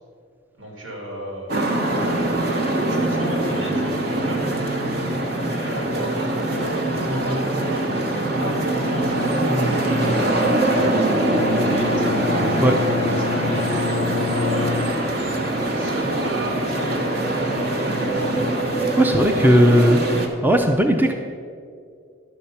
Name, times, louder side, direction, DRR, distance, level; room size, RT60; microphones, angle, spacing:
voice 1, 0.6-2.4 2.9-4.5 5.4-12.2 13.1-15.3 15.7-18.4, equal, 85° right, -1 dB, 2.9 m, -34 dB
sound 1, 1.5-20.3, right 1 dB, 50° right, 1.2 m, -23 dB
Bowed string instrument, 11.3-15.5, left 5 dB, 60° left, 0.4 m, -28 dB
voice 2, 19.0-20.1 20.4-21.1, equal, 10° right, 4 dB, 0.5 m, -16 dB
11.5 x 6.7 x 5.7 m, 2.3 s
head